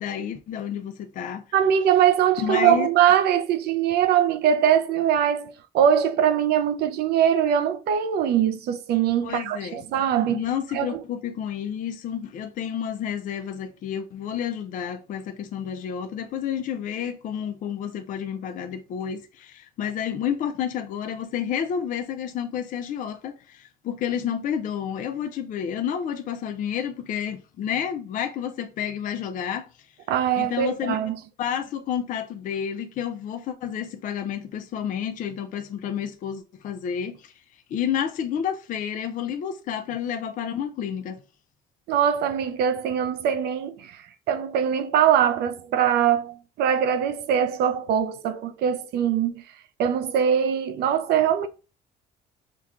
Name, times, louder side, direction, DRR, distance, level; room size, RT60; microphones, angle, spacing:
voice 1, 0.0-1.4 2.4-2.9 9.2-9.9 10.2-29.7 30.4-31.0 31.4-37.3 37.7-41.2, left 8 dB, 50° left, 0.4 m, -30 dB
voice 2, 1.5-10.4 10.7-11.0 30.1-31.1 41.9-49.4 49.8-51.5, right 9 dB, 70° right, 0.5 m, -22 dB
5.7 x 2.2 x 2.4 m
cardioid pair, 110°, 17 cm